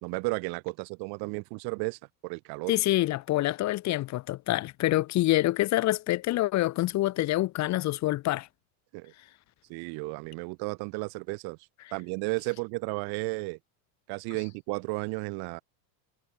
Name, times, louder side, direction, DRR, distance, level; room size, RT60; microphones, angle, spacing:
voice 1, 0.0-2.8 8.9-9.1 9.7-11.6 11.9-13.6 14.1-15.6, right 29 dB, 50° right, 1.4 m, -33 dB
voice 2, 2.7-8.5, left 16 dB, 35° left, 1.2 m, -26 dB
supercardioid pair, 155°, 50 cm